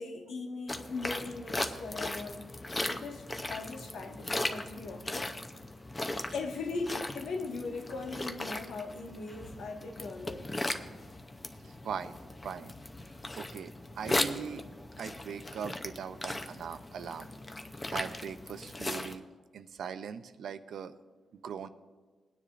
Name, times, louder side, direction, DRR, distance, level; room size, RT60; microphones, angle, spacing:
voice 1, 0.0-2.4 2.9-5.4 6.3-10.5, left 3 dB, 85° left, 1.6 m, -39 dB
sound 1, 0.7-19.2, left 2 dB, 20° left, 0.6 m, -38 dB
voice 2, 11.6-12.2 12.4-12.7 13.4-14.6 15.0-17.3 17.9-19.3 19.5-20.9 21.3-21.7, right 7 dB, 70° right, 0.6 m, -40 dB
20.5 x 9.9 x 2.5 m
wide cardioid pair, 170°, 0 cm